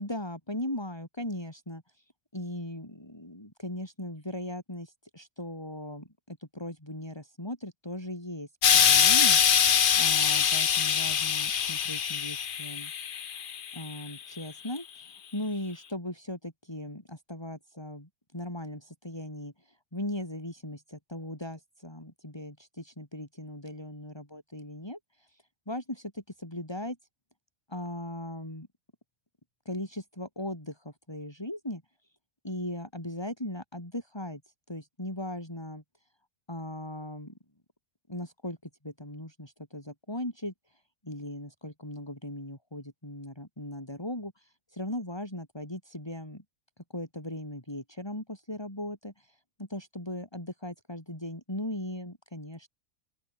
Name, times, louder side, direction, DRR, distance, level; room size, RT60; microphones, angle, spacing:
voice 1, 0.0-12.9 13.7-27.0 27.7-28.7 29.7-31.8 32.4-35.8 36.5-37.3 38.1-46.4 46.8-52.7, left 1 dB, 20° left, 5.2 m, -38 dB
Explosion, 8.6-13.9 14.8-14.9, left 8 dB, 45° left, 0.8 m, -23 dB
open air
omnidirectional pair, 1.4 m